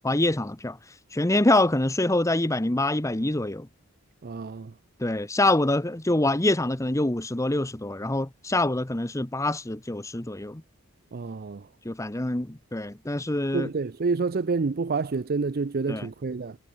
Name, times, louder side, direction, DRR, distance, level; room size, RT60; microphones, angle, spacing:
voice 1, 0.0-0.8 1.1-3.7 5.0-10.6 11.8-13.7 15.9-16.1, left 2 dB, 15° left, 1.0 m, -25 dB
voice 2, 4.2-4.7 11.1-11.7 13.5-16.6, right 4 dB, 45° right, 0.5 m, -28 dB
head